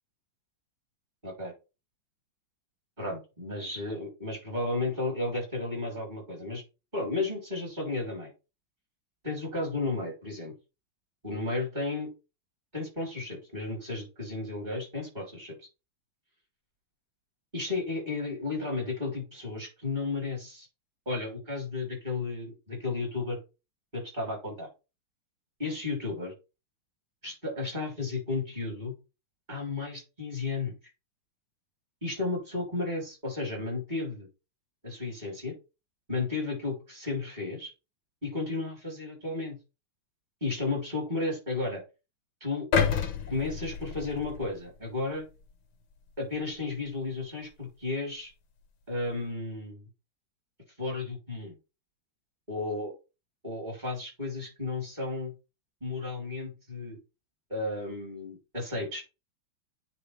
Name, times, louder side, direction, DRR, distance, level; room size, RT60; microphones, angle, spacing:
voice 1, 3.0-6.6 6.9-8.3 9.2-10.5 11.2-12.1 12.7-15.7 17.5-20.7 21.1-23.4 23.9-24.7 25.6-26.3 27.2-28.9 29.5-30.7 32.0-34.3 34.8-35.5 36.1-37.7 38.2-39.6 40.4-41.8 42.4-42.7 43.3-45.2 46.2-48.3 48.9-49.9 50.8-51.5 52.5-52.9 53.4-55.3 55.8-57.0 57.5-59.0, left 3 dB, 20° right, -2 dB, 3.8 m, -33 dB
sound 1, 42.7-44.9 45.4-45.5, left 7 dB, 75° left, 1.9 m, -29 dB
9.9 x 3.9 x 3.4 m, 0.29 s
omnidirectional pair, 2.3 m